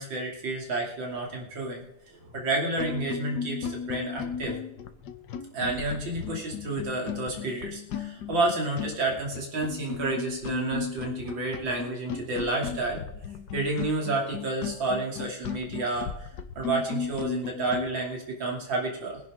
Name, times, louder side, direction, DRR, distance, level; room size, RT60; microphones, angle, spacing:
voice 1, 0.0-1.8 2.2-4.6 5.5-13.0 13.5-16.3 16.6-19.2, right 2 dB, 60° right, -1 dB, 3.5 m, -30 dB
sound 1, 2.3-2.4 2.8-17.9, left 7 dB, 60° left, 1.4 m, -36 dB
23.0 x 10.5 x 3.7 m, 0.80 s
omnidirectional pair, 2.3 m